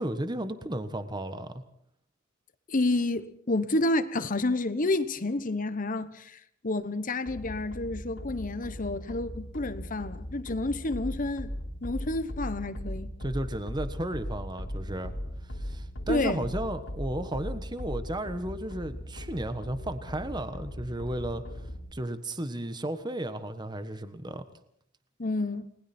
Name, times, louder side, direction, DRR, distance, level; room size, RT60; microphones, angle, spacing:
voice 1, 0.0-1.6 13.2-15.1 15.6-21.4 21.9-24.4, right 1 dB, 20° right, 1.3 m, -34 dB
voice 2, 2.7-11.5 11.8-13.1 16.1-16.5 25.2-25.7, left 2 dB, 40° left, 1.1 m, -29 dB
sound 1, 7.3-21.9, equal, 70° left, 3.7 m, -38 dB
30.0 x 20.0 x 4.4 m
head